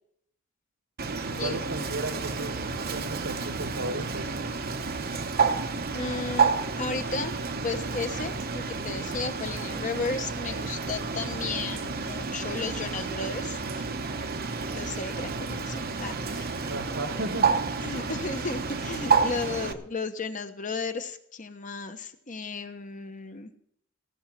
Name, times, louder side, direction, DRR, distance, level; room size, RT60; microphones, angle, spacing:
Bird, 1.0-19.7, right 5 dB, 50° right, 1.0 m, -30 dB
voice 1, 1.2-4.4 16.7-17.5, right 2 dB, 75° right, 8 dB, 1.7 m, -35 dB
voice 2, 5.9-7.3 7.6-13.9 14.7-16.7 17.8-23.5, left 4 dB, 40° left, 8 dB, 1.1 m, -34 dB
18.5 x 6.4 x 7.4 m, 0.69 s
head